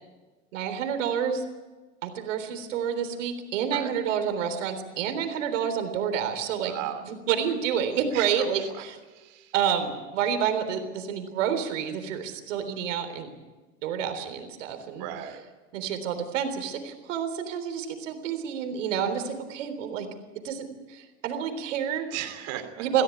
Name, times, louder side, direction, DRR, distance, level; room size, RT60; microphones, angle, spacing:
voice 1, 0.5-1.5 2.0-6.7 7.0-9.0 9.5-13.3 13.8-15.1 15.7-20.1 20.4-22.1 22.8-23.0, right 8 dB, 75° right, 8 dB, 3.8 m, -29 dB
voice 2, 6.5-7.0 8.1-9.5 15.0-15.4 22.1-22.9, right 12 dB, 55° right, 8 dB, 3.3 m, -37 dB
23.5 x 15.5 x 9.3 m, 1.3 s
hypercardioid pair, 110°, 37 cm